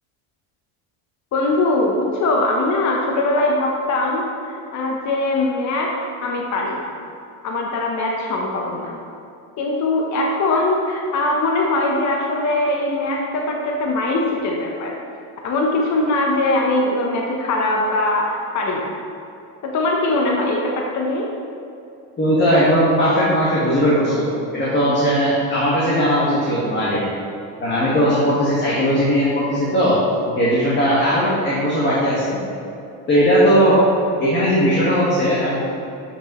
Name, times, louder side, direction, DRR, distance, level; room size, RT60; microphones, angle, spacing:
voice 1, 1.3-5.9 6.2-6.9 7.4-9.0 9.6-15.0 15.4-18.9 19.6-21.3, left 2 dB, 40° left, -1 dB, 0.9 m, -21 dB
voice 2, 22.2-24.3 24.5-27.0 27.6-30.0 30.2-32.4 33.1-33.8 34.2-35.6, equal, 25° left, -7 dB, 1.6 m, -18 dB
8.1 x 6.1 x 3.1 m, 2.7 s
supercardioid pair, 105°, 45 cm